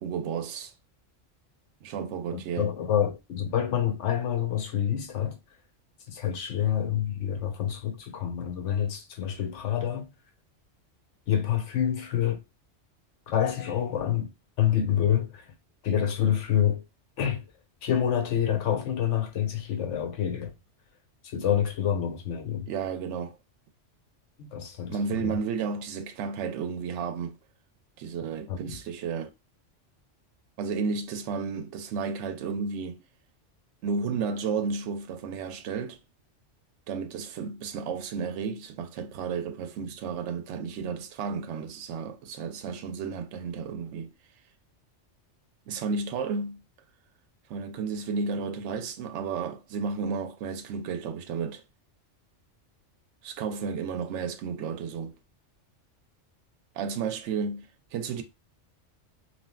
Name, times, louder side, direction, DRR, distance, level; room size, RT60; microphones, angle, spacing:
voice 1, 0.0-0.7 1.8-2.7 22.7-23.4 24.9-27.4 28.0-29.3 30.6-33.0 33.8-36.0 36.9-44.1 45.7-46.6 47.5-51.6 53.2-55.2 56.7-57.7 57.9-58.2, right 5 dB, 75° right, 0.8 m, -32 dB
voice 2, 2.3-5.4 6.1-10.1 11.3-12.4 13.3-14.3 14.6-15.5 15.8-16.8 17.2-17.4 17.8-20.5 21.2-22.7 24.4-25.4 28.5-28.8, left 9 dB, 75° left, 1.0 m, -27 dB
3.3 x 2.4 x 2.2 m
omnidirectional pair, 1.2 m